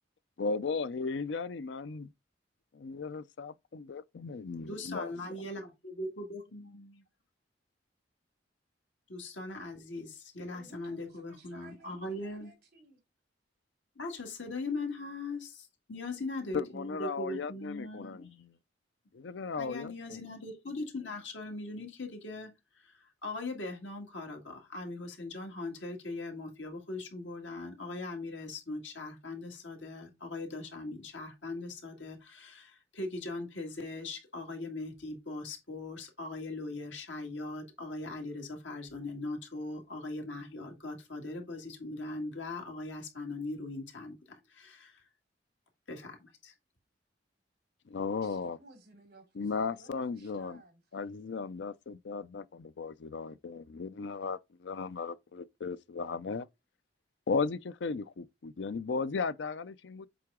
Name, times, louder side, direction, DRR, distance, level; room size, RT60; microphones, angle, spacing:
voice 1, 0.4-2.1 2.7-5.1 16.5-18.5 19.1-20.2 47.9-48.6 49.4-50.6 50.9-56.5 57.3-60.1, left 4 dB, 70° left, 0.5 m, -36 dB
voice 2, 4.7-6.9 9.1-12.5 14.0-18.3 19.6-45.1 45.9-46.5, left 2 dB, 85° left, 2.0 m, -40 dB
voice 3, 10.5-13.0 48.2-50.8, right 3 dB, 60° right, 3.1 m, -57 dB
7.7 x 3.8 x 3.6 m
head